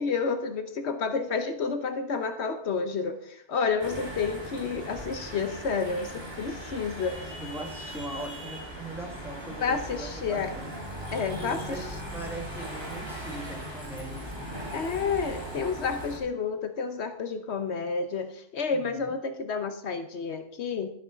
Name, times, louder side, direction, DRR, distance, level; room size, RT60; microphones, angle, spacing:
voice 1, 0.0-7.2 9.6-10.5 11.1-11.6 14.7-20.9, left 5 dB, 75° left, 8 dB, 1.1 m, -30 dB
sound 1, 3.8-16.2, equal, 20° right, 3.2 m, -39 dB
voice 2, 7.4-10.7 11.3-11.9 12.1-14.5 18.7-19.1, right 1 dB, ahead, 0 dB, 2.0 m, -40 dB
12.5 x 6.1 x 5.1 m, 0.67 s
omnidirectional pair, 1.2 m